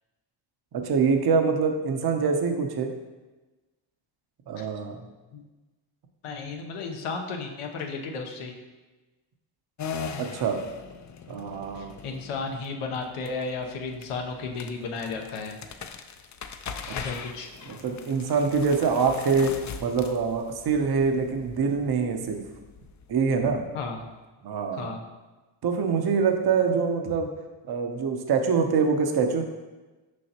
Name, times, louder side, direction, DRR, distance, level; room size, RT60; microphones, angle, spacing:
voice 1, 0.7-2.9 4.5-5.0 10.2-10.6 11.3-11.9 17.7-19.5 19.8-22.4 23.1-23.6 24.4-24.9 25.6-27.3 27.7-29.4, right 5 dB, 50° right, 5 dB, 0.8 m, -25 dB
voice 2, 6.2-8.6 11.7-15.6 16.9-17.5 23.7-24.0 24.7-25.0, left 4 dB, 85° left, 2 dB, 0.9 m, -34 dB
sound 1, 9.8-24.0, left 6 dB, 40° left, 0.4 m, -41 dB
6.3 x 5.4 x 2.9 m, 1.2 s
cardioid pair, 85°, 50 cm